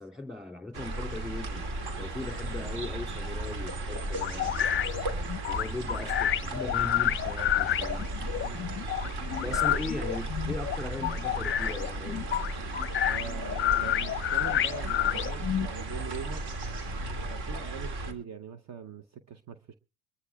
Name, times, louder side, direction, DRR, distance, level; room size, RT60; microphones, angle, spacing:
voice 1, 0.0-1.7 2.0-4.5 5.5-8.1 9.4-12.2, left 2 dB, ahead, 2.7 m, -39 dB
sound 1, 0.7-18.1, right 2 dB, 55° right, 2.6 m, -35 dB
sound 2, 4.2-15.7, left 11 dB, 30° left, 0.6 m, -29 dB
voice 2, 9.5-9.8 13.0-16.4 17.3-19.7, right 7 dB, 40° right, 0.8 m, -42 dB
23.5 x 13.0 x 2.3 m
supercardioid pair, 105°, 43 cm